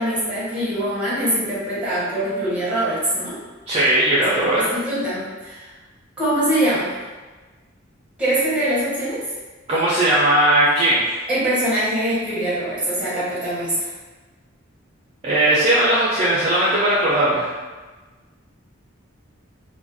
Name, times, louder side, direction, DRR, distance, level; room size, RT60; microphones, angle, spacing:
voice 1, 0.0-3.4 4.3-5.7 6.2-6.9 8.2-9.2 11.3-13.9, right 1 dB, 5° right, -9 dB, 0.7 m, -23 dB
voice 2, 3.7-4.7 9.7-11.1 15.2-17.5, right 1 dB, 30° right, -9 dB, 0.4 m, -18 dB
2.4 x 2.1 x 2.6 m, 1.3 s
head